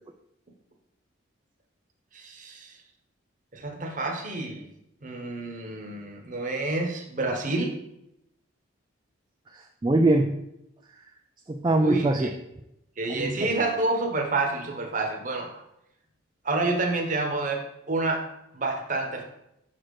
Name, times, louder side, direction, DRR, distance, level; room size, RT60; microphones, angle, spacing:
voice 1, 2.1-2.7 3.5-4.7 5.0-7.8 11.8-12.3 13.0-15.5 16.4-19.2, right 2 dB, 40° right, 2 dB, 1.0 m, -29 dB
voice 2, 9.5-10.4 11.5-12.3 13.1-13.5, right 2 dB, 20° right, 2 dB, 0.3 m, -23 dB
6.0 x 4.3 x 4.8 m, 0.83 s
head